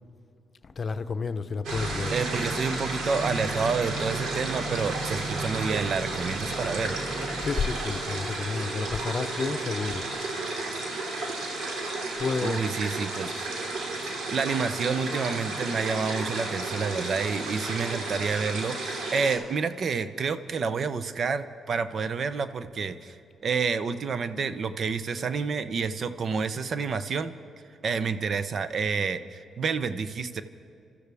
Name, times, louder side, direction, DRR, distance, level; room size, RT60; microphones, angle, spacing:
voice 1, 0.6-2.2 7.4-10.0 12.2-12.7, left 5 dB, 45° left, 0.7 m, -30 dB
sound 1, 1.6-19.4, right 2 dB, 75° right, 2.6 m, -32 dB
sound 2, 1.7-7.4, right 2 dB, 10° right, 1.1 m, -39 dB
voice 2, 2.1-7.0 12.4-13.5 14.0-23.2 23.4-27.3 27.8-30.4, right 5 dB, 55° right, 0.8 m, -29 dB
28.5 x 13.5 x 3.5 m
supercardioid pair, 55°, 0 cm